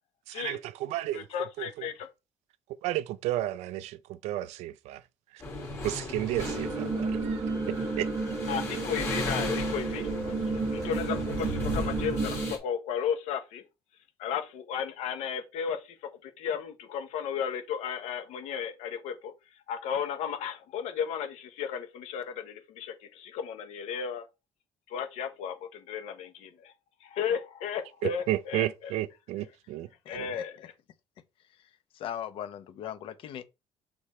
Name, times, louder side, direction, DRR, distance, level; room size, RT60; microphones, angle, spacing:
voice 1, 0.3-1.3 1.6-1.9 2.7-5.0 5.3-5.4 5.8-8.1 28.0-29.9 30.1-30.3, right 14 dB, 80° right, 0.6 m, -33 dB
voice 2, 1.1-2.1 8.5-13.6 14.2-15.9 16.2-19.3 19.7-24.2 24.9-26.7 27.0-28.9 30.1-30.7, left 7 dB, 80° left, 1.1 m, -34 dB
sound 1, 5.4-12.6, left 2 dB, 25° left, 2.1 m, -37 dB
sound 2, 6.4-12.5, right 3 dB, 30° right, 1.0 m, -32 dB
voice 3, 30.0-30.4 31.9-33.4, left 10 dB, 50° left, 0.8 m, -39 dB
6.6 x 3.9 x 4.3 m
cardioid pair, 180°, 11 cm